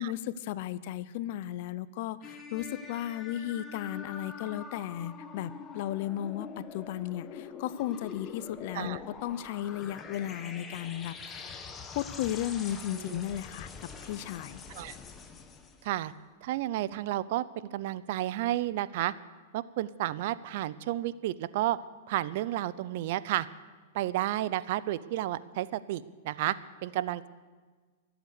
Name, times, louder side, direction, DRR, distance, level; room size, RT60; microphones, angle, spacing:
voice 1, 0.0-11.5 11.9-14.6, left 12 dB, 55° left, 17 dB, 0.7 m, -35 dB
sound 1, 2.2-16.0, left 5 dB, 20° left, 1.4 m, -45 dB
voice 2, 15.8-16.1 16.4-17.4 17.7-19.1 19.5-21.8 22.1-23.5 23.9-26.5 26.8-27.3, right 14 dB, 60° right, 17 dB, 0.6 m, -31 dB
24.0 x 8.0 x 6.7 m, 1.4 s
hypercardioid pair, 115°, 0 cm